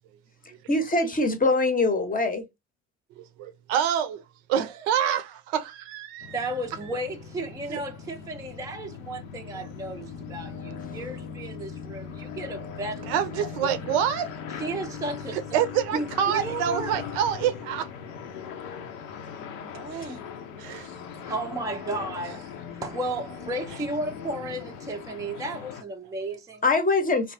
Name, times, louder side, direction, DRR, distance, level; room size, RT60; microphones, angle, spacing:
voice 1, 0.7-2.4 20.7-20.8 26.6-27.3, left 2 dB, 20° left, 0.7 m, -23 dB
voice 2, 3.2-4.2 4.5-6.3 7.7-7.8 13.1-14.3 15.3-17.9 19.9-20.1 20.6-20.9, right 9 dB, 65° right, 0.6 m, -27 dB
sound 1, 6.2-25.8, left 7 dB, 75° left, 0.7 m, -39 dB
voice 3, 6.3-13.7 14.5-15.6 15.9-17.0 19.7-20.3 21.1-26.6, right 2 dB, 10° right, 0.5 m, -34 dB
3.2 x 2.3 x 2.5 m
hypercardioid pair, 55°, 39 cm